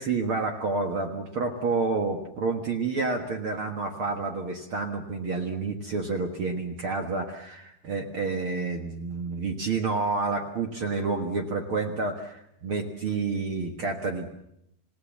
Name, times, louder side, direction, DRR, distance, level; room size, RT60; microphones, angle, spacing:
voice 1, 0.0-14.3, right 4 dB, 55° right, 4 dB, 1.5 m, -29 dB
28.0 x 17.0 x 7.3 m, 0.78 s
omnidirectional pair, 4.6 m